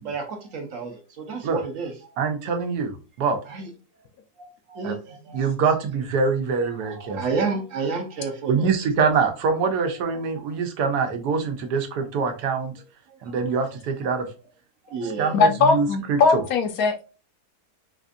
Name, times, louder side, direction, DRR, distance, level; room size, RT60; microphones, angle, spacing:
voice 1, 0.0-0.9 1.2-2.3 3.5-3.7 4.4-5.4 6.7-8.7 10.4-10.5 13.3-13.4 14.8-15.4, right 4 dB, 65° right, 1.0 m, -31 dB
voice 2, 2.2-2.9 3.2-3.4 4.8-4.9 5.3-7.2 8.5-12.7 13.2-14.3 15.2-16.4, right 5 dB, 80° right, 1.2 m, -24 dB
voice 3, 15.3-17.0, left 4 dB, 70° left, 1.0 m, -20 dB
4.1 x 2.4 x 2.5 m
omnidirectional pair, 1.7 m